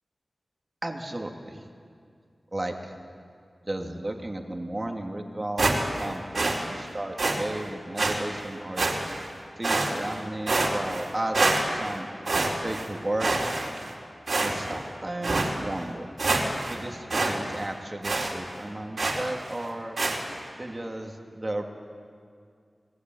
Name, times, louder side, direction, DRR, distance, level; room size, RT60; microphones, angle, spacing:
voice 1, 0.8-1.6 2.5-3.0 3.6-8.9 9.6-13.3 14.4-16.1 16.6-20.0 20.6-21.6, right 1 dB, 30° right, 2 dB, 2.7 m, -34 dB
sound 1, 5.6-6.1 6.3-6.6 7.2-7.4 8.0-8.1 8.8-9.2 9.6-10.2 10.5-11.1 11.3-11.9 12.3-12.9 13.2-13.9 14.3-14.8 15.2-15.5 15.9-16.0 16.2-16.8 17.1-17.3 17.6-17.7 18.0-18.3 19.0-19.3 20.0-20.2, right 2 dB, 65° right, 4.2 m, -26 dB
28.5 x 19.5 x 9.5 m, 2.2 s
wide cardioid pair, 90°, 0 cm